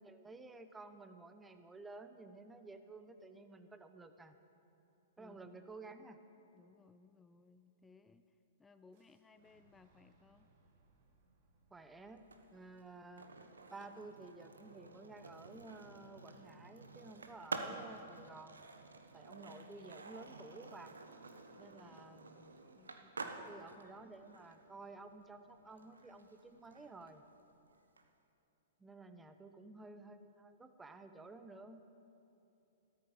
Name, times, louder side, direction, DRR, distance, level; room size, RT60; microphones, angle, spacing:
voice 1, 0.0-4.3 5.2-6.2 11.7-13.3 13.7-18.7 19.1-20.9 21.6-22.6 23.2-27.2 28.8-31.8, right 3 dB, 10° right, 9 dB, 0.8 m, -53 dB
voice 2, 5.2-5.5 6.5-10.5 21.7-22.3 22.7-23.2, left 4 dB, 15° left, 11 dB, 0.4 m, -64 dB
Boom, 8.9-14.8, right 3 dB, 55° right, 1.7 m, -73 dB
Skateboard, 12.2-28.0, right 3 dB, 90° right, 1.0 m, -50 dB
14.5 x 13.0 x 5.0 m, 2.8 s
hypercardioid pair, 115°, 0 cm